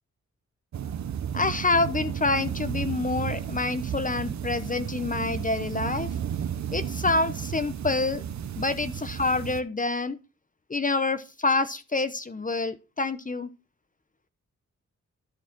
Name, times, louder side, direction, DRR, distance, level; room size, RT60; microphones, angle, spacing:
sound 1, 0.7-9.6, right 9 dB, 70° right, 0.8 m, -33 dB
voice 1, 1.3-6.1 6.7-8.2 8.6-10.2 10.7-13.5, left 3 dB, 25° left, 12 dB, 0.9 m, -27 dB
12.0 x 4.8 x 6.0 m, 0.30 s
cardioid pair, 85°, 29 cm